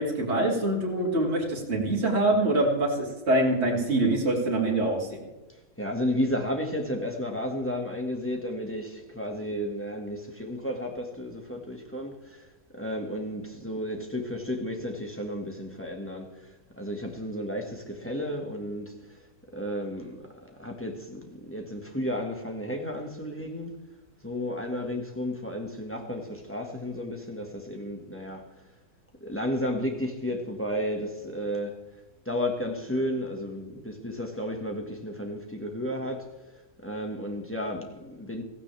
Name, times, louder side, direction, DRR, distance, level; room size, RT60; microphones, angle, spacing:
voice 1, 0.0-5.2, right 1 dB, 45° right, 3.3 m, -25 dB
voice 2, 5.5-19.2 19.5-23.8 24.2-28.4 29.2-31.8 32.3-36.3 36.8-38.4, equal, 10° left, 1.8 m, -33 dB
16.0 x 16.0 x 3.5 m
omnidirectional pair, 1.6 m